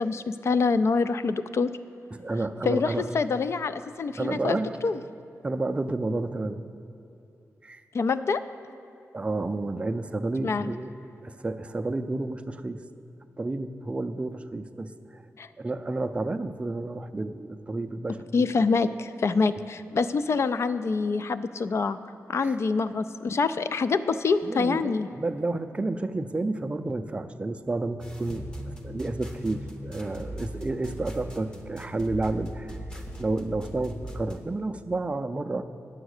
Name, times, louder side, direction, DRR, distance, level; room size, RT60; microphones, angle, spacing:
voice 1, 0.0-1.7 2.6-5.0 7.9-8.4 10.4-10.7 15.4-15.5 18.3-22.0 22.3-25.1, left 4 dB, 55° left, 12 dB, 0.4 m, -26 dB
voice 2, 2.1-3.1 4.2-4.7 5.4-6.6 7.6-7.8 9.1-10.9 11.2-12.8 13.4-15.2 15.6-18.4 22.4-22.6 24.4-35.6, right 2 dB, 20° right, 8 dB, 0.4 m, -31 dB
sound 1, 28.0-34.4, equal, 15° left, 0.8 m, -39 dB
9.1 x 7.0 x 6.5 m, 2.6 s
wide cardioid pair, 120°, 6 cm